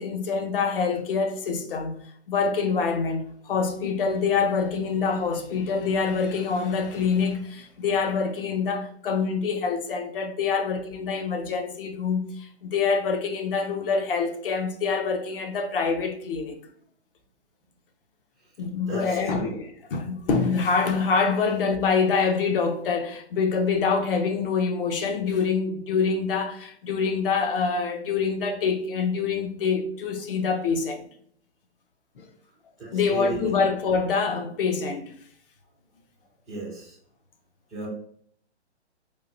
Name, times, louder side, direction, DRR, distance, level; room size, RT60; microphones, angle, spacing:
voice 1, 0.0-2.0 2.3-16.6 18.6-31.0 32.2-32.3 32.9-35.1, left 5 dB, 50° left, 0.7 m, -25 dB
voice 2, 18.9-19.6 32.8-33.7 36.5-37.0 37.7-37.9, right 3 dB, ahead, 0.4 m, -35 dB
4.5 x 2.4 x 2.6 m
hypercardioid pair, 140°, 35 cm